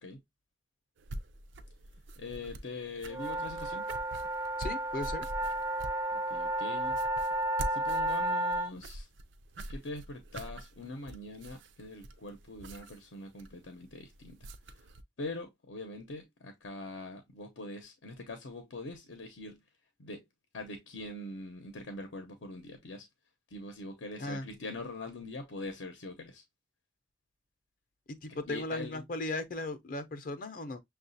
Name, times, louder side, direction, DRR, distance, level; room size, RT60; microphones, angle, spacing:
sound 1, 1.0-15.0, right 1 dB, 80° right, 0.4 m, -45 dB
voice 1, 2.2-3.9 6.3-7.0 7.7-9.1 9.7-14.5 15.2-19.6 20.0-20.2 20.5-23.1 23.5-26.4 28.3-29.0, left 2 dB, 90° left, 0.7 m, -43 dB
sound 2, 3.1-8.7, right 1 dB, 15° right, 0.3 m, -32 dB
voice 2, 4.6-5.3 24.2-24.5 28.2-30.8, left 2 dB, 45° left, 0.5 m, -37 dB
6.3 x 2.3 x 2.6 m
head